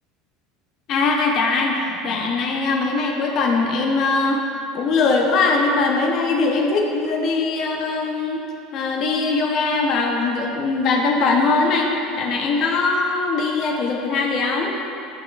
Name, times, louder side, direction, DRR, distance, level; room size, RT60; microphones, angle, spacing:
voice 1, 0.9-4.4 4.7-8.4 8.7-14.7, left 3 dB, 50° left, 1 dB, 0.8 m, -21 dB
9.5 x 5.8 x 2.4 m, 2.8 s
figure-of-eight pair, 70°, 0 cm